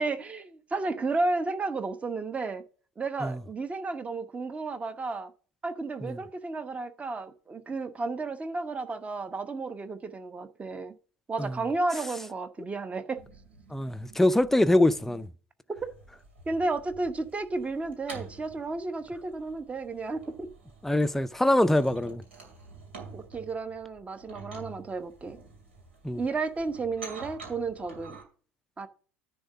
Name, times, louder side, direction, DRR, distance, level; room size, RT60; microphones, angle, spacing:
voice 1, 0.0-2.6 3.0-5.3 5.6-11.0 11.3-13.2 15.8-15.9 16.5-20.5 23.1-25.4 26.1-28.2 28.8-28.9, right 3 dB, 20° right, 0.9 m, -32 dB
sound 1, 13.1-15.3 15.8-28.2, right 4 dB, 80° right, 2.3 m, -48 dB
voice 2, 13.7-15.3 20.8-22.2 26.0-26.2, left 1 dB, 5° left, 0.5 m, -24 dB
10.0 x 3.6 x 7.2 m
figure-of-eight pair, 65°, 6 cm